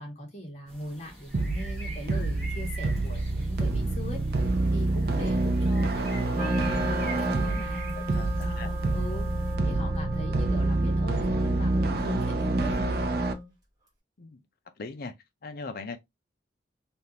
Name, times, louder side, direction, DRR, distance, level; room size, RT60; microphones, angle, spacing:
voice 1, 0.0-4.4 4.7-9.3 9.6-13.1, left 1 dB, 35° left, 1.3 m, -40 dB
sound 1, 0.7-9.6, right 1 dB, 5° left, 1.2 m, -46 dB
sound 2, 1.3-13.3, right 2 dB, 55° right, 0.5 m, -27 dB
Wind instrument woodwind instrument, 6.3-13.5, equal, 20° right, 1.3 m, -37 dB
voice 2, 8.0-8.7 14.2-14.4 14.8-15.1 15.4-16.0, left 4 dB, 55° left, 0.6 m, -39 dB
3.4 x 2.5 x 2.8 m
head